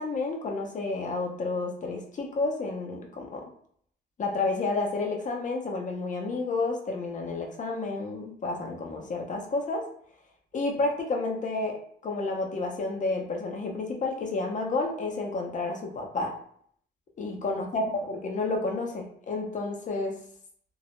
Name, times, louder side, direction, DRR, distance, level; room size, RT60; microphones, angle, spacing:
voice 1, 0.0-3.5 4.2-9.9 10.5-16.3 17.2-20.2, left 3 dB, 40° left, 2 dB, 0.6 m, -30 dB
2.2 x 2.0 x 2.9 m, 0.63 s
cardioid pair, 90°, 20 cm